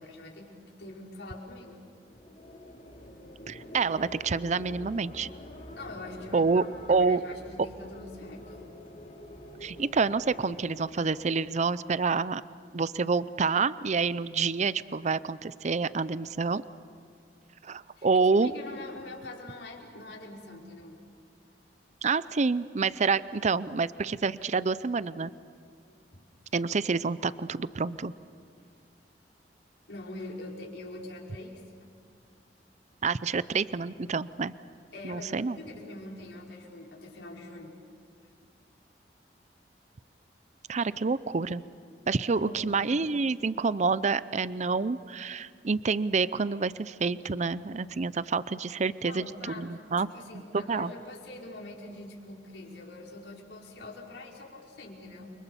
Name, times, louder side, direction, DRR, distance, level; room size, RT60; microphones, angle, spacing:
voice 1, 0.0-1.8 2.1-2.2 5.7-9.0 9.3-9.4 18.0-21.0 26.1-26.2 29.9-31.6 34.9-37.8 38.4-38.5 42.4-42.7 49.0-55.3, left 2 dB, 85° left, -1 dB, 4.9 m, -44 dB
sound 1, 2.0-11.3, left 1 dB, 45° left, 3.8 m, -47 dB
voice 2, 3.5-5.3 6.3-7.2 9.6-12.4 12.7-16.6 17.6-18.5 22.0-25.3 26.5-28.1 33.0-34.5 35.0-35.6 40.7-41.6 42.1-49.3 49.6-50.1 50.5-50.9, right 4 dB, 40° right, 16 dB, 0.5 m, -28 dB
29.5 x 24.5 x 7.0 m, 2.3 s
head